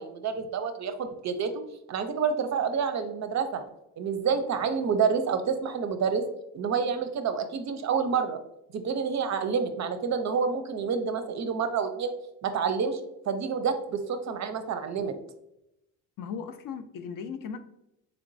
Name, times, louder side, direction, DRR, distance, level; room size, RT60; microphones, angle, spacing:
voice 1, 0.0-1.5 1.9-3.6 4.0-6.2 6.5-8.4 8.7-12.1 12.4-13.0 13.3-15.1, right 6 dB, 40° right, 8 dB, 0.5 m, -28 dB
voice 2, 16.2-17.6, left 6 dB, 55° left, 9 dB, 0.4 m, -37 dB
3.3 x 2.9 x 2.5 m, 0.84 s
supercardioid pair, 65°, 41 cm